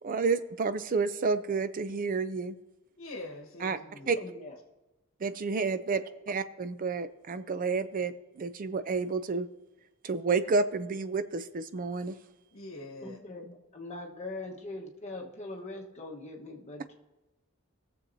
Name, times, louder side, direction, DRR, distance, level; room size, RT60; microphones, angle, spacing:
voice 1, 0.0-2.6 3.6-3.8 4.1-4.2 5.2-9.5 10.0-12.2, right 4 dB, 40° right, 12 dB, 0.5 m, -30 dB
voice 2, 3.0-4.1 12.5-13.2, left 2 dB, 65° left, 3 dB, 1.1 m, -43 dB
voice 3, 4.2-4.6 5.9-6.0 13.0-16.9, left 2 dB, 35° left, 0 dB, 1.2 m, -42 dB
19.5 x 7.0 x 2.7 m, 1.1 s
head